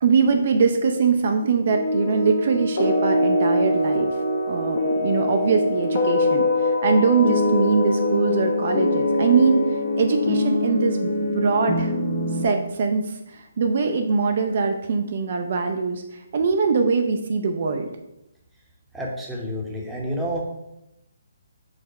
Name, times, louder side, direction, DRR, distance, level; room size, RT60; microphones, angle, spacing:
voice 1, 0.0-4.1 4.5-9.6 10.0-11.9 12.4-16.0 16.3-17.9, right 5 dB, 50° right, 4 dB, 0.4 m, -22 dB
sound 1, 1.7-12.5, left 1 dB, 55° left, 1.0 m, -23 dB
voice 2, 18.9-20.4, equal, 5° right, -3 dB, 0.8 m, -29 dB
4.7 x 2.1 x 4.6 m, 0.87 s
figure-of-eight pair, 145°, 0 cm